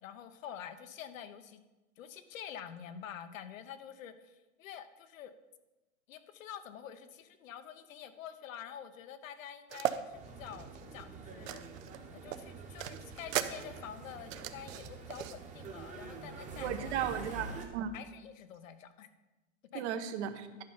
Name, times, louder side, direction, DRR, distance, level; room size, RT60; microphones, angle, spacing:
voice 1, 0.0-1.6 2.0-5.3 6.1-11.6 12.1-17.4 17.9-19.1 19.7-20.0, left 9 dB, 85° left, 10 dB, 1.0 m, -47 dB
sound 1, 9.7-10.0 10.5-12.0 12.3-15.4, right 12 dB, 85° right, 0.8 m, -37 dB
sound 2, 10.1-17.7, right 3 dB, 20° right, 1.1 m, -47 dB
voice 2, 16.6-17.9 19.7-20.5, right 9 dB, 60° right, 9 dB, 1.0 m, -35 dB
11.0 x 5.4 x 5.6 m, 1.1 s
supercardioid pair, 150°, 39 cm